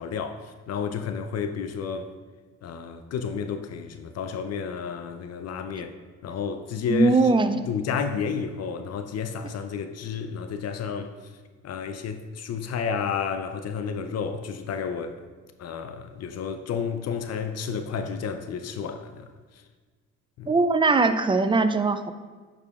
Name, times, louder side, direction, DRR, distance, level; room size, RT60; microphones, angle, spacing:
voice 1, 0.0-2.1 2.6-5.9 6.2-7.1 7.7-11.1 11.6-15.2 15.6-19.3 20.4-20.5, left 6 dB, 55° left, 0.5 m, -31 dB
voice 2, 6.9-7.6 20.5-22.1, right 3 dB, 15° right, 0.4 m, -21 dB
9.7 x 4.8 x 2.3 m
cardioid pair, 90°, 30 cm